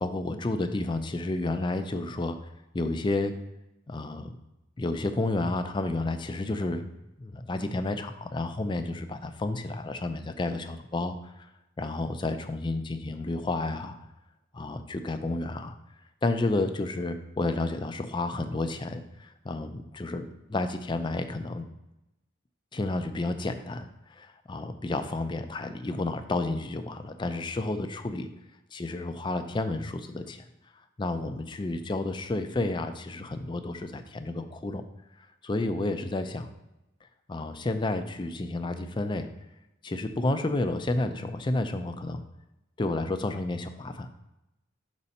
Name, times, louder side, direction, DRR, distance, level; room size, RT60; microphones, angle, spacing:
voice 1, 0.0-2.4 2.7-3.4 3.9-4.4 4.8-6.9 7.2-11.5 11.8-14.0 14.5-15.8 16.2-21.7 22.7-28.3 28.7-30.5 31.0-34.8 35.4-36.5 37.3-39.3 39.8-42.2 42.8-44.3, left 2 dB, 25° left, 8 dB, 0.4 m, -31 dB
6.0 x 4.2 x 5.3 m, 0.92 s
head